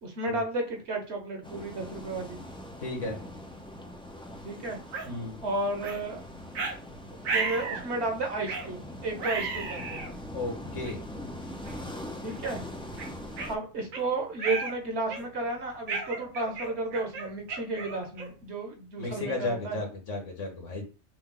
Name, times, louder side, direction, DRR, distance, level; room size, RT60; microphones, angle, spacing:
voice 1, 0.0-2.4 4.4-4.8 5.4-6.2 7.3-10.0 12.2-12.6 13.5-19.8, right 2 dB, 55° right, 2 dB, 1.3 m, -33 dB
sound 1, 1.4-13.6, left 1 dB, 5° left, 0.4 m, -42 dB
voice 2, 2.8-3.2 5.0-5.4 10.3-11.0 19.0-20.8, left 2 dB, 65° left, 1 dB, 1.7 m, -34 dB
sound 2, 4.9-5.1 5.8-6.0 6.5-6.8 7.2-7.9 8.5-8.7 9.2-10.1 10.8-10.9 11.6-11.9 12.3-12.4 13.0-14.0 14.4-14.8 15.1-15.4 15.9-18.4, right 4 dB, 80° right, 1.4 m, -34 dB
6.1 x 2.3 x 3.7 m, 0.35 s
omnidirectional pair, 1.4 m